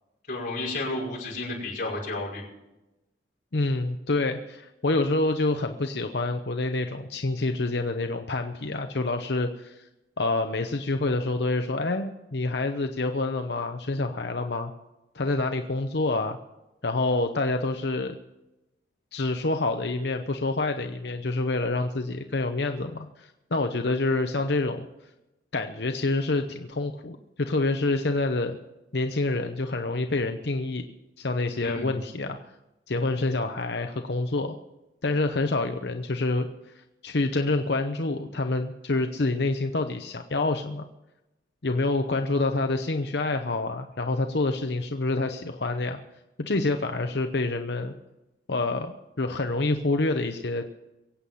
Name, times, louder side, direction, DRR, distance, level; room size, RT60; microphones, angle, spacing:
voice 1, 0.3-2.4 31.6-31.9, left 2 dB, 45° left, -5 dB, 5.6 m, -32 dB
voice 2, 3.5-9.9 10.2-14.7 15.1-16.4 16.8-18.2 19.1-24.9 25.5-28.6 28.9-30.9 31.2-32.4 32.9-34.5 35.0-36.5 36.8-40.9 41.6-46.0 46.5-47.9 48.5-50.7, left 2 dB, 65° left, 6 dB, 0.9 m, -27 dB
23.0 x 8.5 x 5.6 m, 0.96 s
head